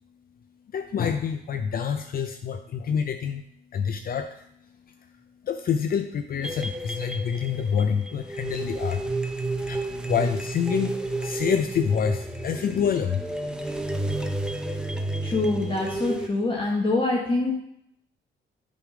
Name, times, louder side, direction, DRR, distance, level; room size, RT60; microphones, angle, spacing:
voice 1, 0.7-3.4 3.7-4.4 5.4-9.0 9.6-13.2, left 7 dB, 50° left, 7 dB, 0.5 m, -27 dB
sound 1, 6.4-16.3, right 2 dB, 5° right, 0.6 m, -31 dB
voice 2, 15.2-17.5, left 2 dB, 25° left, -3 dB, 1.2 m, -25 dB
6.9 x 3.7 x 4.8 m, 0.73 s
cardioid pair, 90°, 20 cm